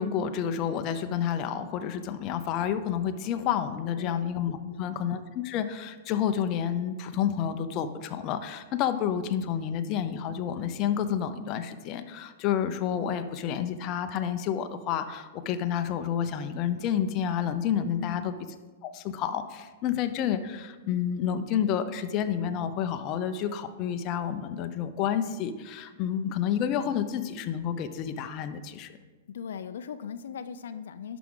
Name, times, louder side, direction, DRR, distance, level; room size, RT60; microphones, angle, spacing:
voice 1, 0.0-18.3 18.8-29.0, left 9 dB, 35° left, 8 dB, 0.6 m, -29 dB
voice 2, 17.9-18.3 29.3-31.2, left 7 dB, 85° left, 11 dB, 0.4 m, -39 dB
11.0 x 5.9 x 3.7 m, 1.3 s
hypercardioid pair, 150°, 0 cm